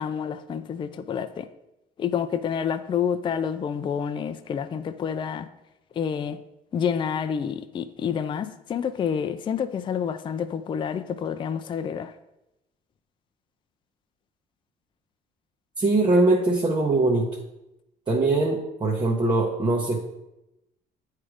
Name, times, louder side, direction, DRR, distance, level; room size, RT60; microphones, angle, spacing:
voice 1, 0.0-1.5 2.0-5.5 6.0-6.4 6.7-12.1, left 7 dB, 30° left, 0.3 m, -28 dB
voice 2, 15.8-17.3 18.1-20.0, right 2 dB, 25° right, 0.9 m, -22 dB
8.6 x 3.2 x 4.9 m
cardioid pair, 110°, 17 cm